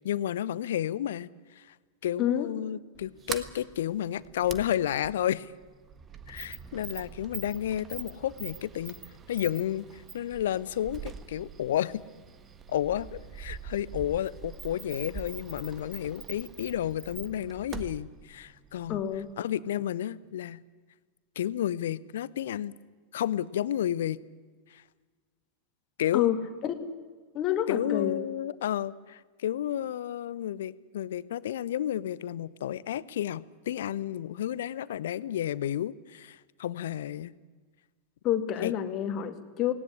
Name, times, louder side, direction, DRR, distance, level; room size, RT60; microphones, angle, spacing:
voice 1, 0.0-1.7 2.0-5.5 6.3-9.0 9.3-12.0 12.7-19.0 19.4-20.6 21.4-22.7 23.1-24.2 24.7-24.8 26.0-26.3 27.7-37.3 38.6-38.7, left 11 dB, 60° left, 20 dB, 0.7 m, -31 dB
voice 2, 2.2-2.5 18.9-19.3 26.1-26.7 27.3-28.2 38.2-39.7, left 10 dB, 35° left, 8 dB, 2.1 m, -28 dB
Sliding door, 2.9-19.3, right 6 dB, 25° right, 1.5 m, -44 dB
18.5 x 18.0 x 9.9 m, 1.4 s
figure-of-eight pair, 90°, 0 cm